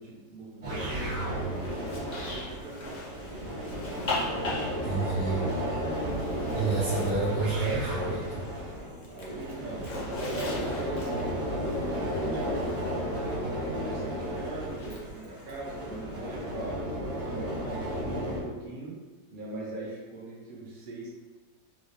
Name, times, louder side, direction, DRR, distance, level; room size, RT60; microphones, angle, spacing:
voice 1, 0.0-3.7 9.1-11.3 11.8-12.7 13.5-18.9 19.3-21.1, right 2 dB, 50° right, -4 dB, 0.6 m, -41 dB
sound 1, 0.6-18.4, equal, 90° right, 2.2 m, -33 dB
Zipper (clothing), 0.7-8.6 8.8-13.3 14.7-15.5, left 2 dB, 75° left, 0.4 m, -40 dB
voice 2, 4.8-5.5 6.5-8.4, right 3 dB, 65° right, -11 dB, 1.3 m, -29 dB
4.5 x 2.0 x 2.9 m, 1.3 s
omnidirectional pair, 1.8 m